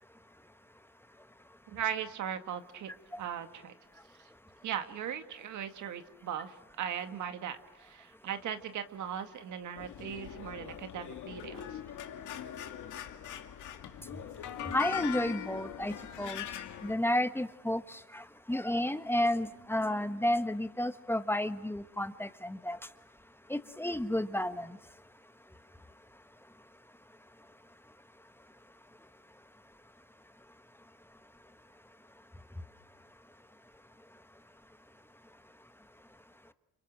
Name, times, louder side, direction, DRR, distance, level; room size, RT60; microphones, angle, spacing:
voice 1, 1.7-2.9 3.2-3.7 4.6-11.8, right 9 dB, 75° right, 8 dB, 2.0 m, -38 dB
sound 1, 9.7-17.0, left 10 dB, 80° left, 2.3 m, -41 dB
voice 2, 14.7-16.4 16.8-22.8 23.5-24.8, left 1 dB, 5° left, 10 dB, 1.4 m, -32 dB
29.5 x 26.0 x 7.6 m, 0.89 s
cardioid pair, 90°, 30 cm